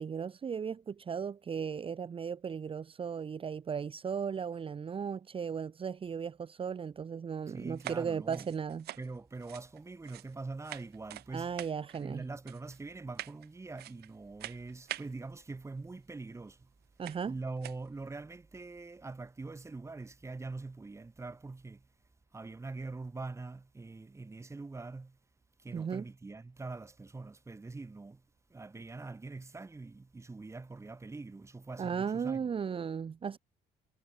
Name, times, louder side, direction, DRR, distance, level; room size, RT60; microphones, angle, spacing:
voice 1, 0.0-8.8 11.3-12.2 17.0-17.3 25.7-26.1 31.8-33.4, right 6 dB, 30° right, 1.1 m, -36 dB
voice 2, 7.5-8.5 9.0-11.5 11.9-16.7 17.3-21.9 22.3-25.2 25.6-28.2 28.5-32.5, right 3 dB, 15° right, 1.9 m, -43 dB
sound 1, 7.7-10.4 10.6-11.3 11.6-12.0 12.5-12.8 13.2-13.5 13.8-14.1 14.4-15.1 16.3-16.4 17.0-17.3 17.6-17.9, right 14 dB, 70° right, 2.2 m, -45 dB
cardioid pair, 110°, 17 cm